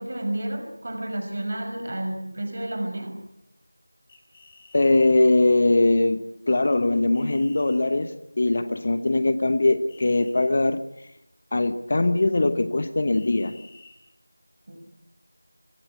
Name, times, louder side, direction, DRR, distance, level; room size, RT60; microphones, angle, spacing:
voice 1, 0.0-3.2 14.7-14.8, right 1 dB, 35° right, 5 dB, 5.9 m, -31 dB
sound 1, 4.1-4.9 7.1-7.8 9.9-10.3 13.1-14.0, left 3 dB, 15° left, 6.5 m, -52 dB
voice 2, 4.7-11.1 11.5-13.6, left 2 dB, 30° left, 11 dB, 0.9 m, -21 dB
25.0 x 21.5 x 8.4 m, 0.88 s
figure-of-eight pair, 175°, 0 cm